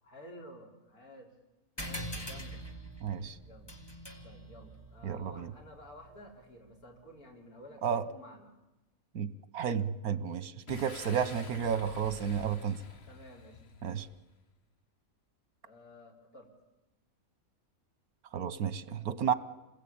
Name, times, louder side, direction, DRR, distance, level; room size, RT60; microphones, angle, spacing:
voice 1, 0.0-1.3 1.8-2.6 3.4-3.8 4.2-8.6 13.1-13.6 15.6-16.5, equal, 85° left, 0 dB, 4.9 m, -52 dB
sound 1, 1.8-6.7, equal, 15° left, 2.1 m, -44 dB
voice 2, 3.0-3.4 5.0-5.5 7.8-8.0 9.2-12.8 13.8-14.1 18.3-19.3, right 7 dB, 80° right, 14 dB, 1.6 m, -32 dB
Boom, 10.7-14.3, left 4 dB, 45° left, 1.4 m, -48 dB
28.5 x 20.5 x 8.8 m, 1.0 s
omnidirectional pair, 1.5 m